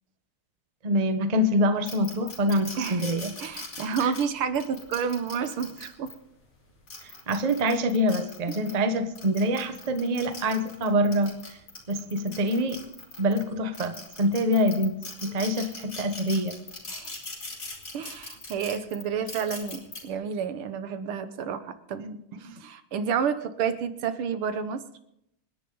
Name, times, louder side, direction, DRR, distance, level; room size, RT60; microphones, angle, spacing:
voice 1, 0.8-3.4 4.0-4.1 7.0-11.6 11.9-12.8 13.2-14.9 15.2-16.6 22.4-22.6, equal, 30° right, 7 dB, 0.8 m, -25 dB
sound 1, 1.9-6.1 6.7-8.7 9.1-13.4 13.7-20.0, left 2 dB, 35° left, 3.3 m, -40 dB
voice 2, 2.8-3.1 3.4-6.1 16.9-17.1 17.9-24.8, right 7 dB, 80° right, 10 dB, 1.9 m, -30 dB
27.0 x 10.5 x 3.9 m, 0.78 s
omnidirectional pair, 2.4 m